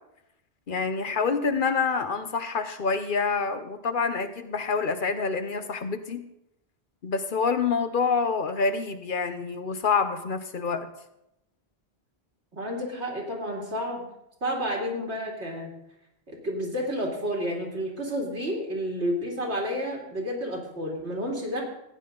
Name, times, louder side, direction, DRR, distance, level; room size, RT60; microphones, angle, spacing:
voice 1, 0.7-6.2 7.0-10.9, left 5 dB, 55° left, 9 dB, 0.9 m, -27 dB
voice 2, 12.5-14.1 14.4-15.7 16.3-21.6, equal, 85° right, -1 dB, 2.9 m, -30 dB
15.0 x 9.7 x 3.8 m, 0.85 s
omnidirectional pair, 1.1 m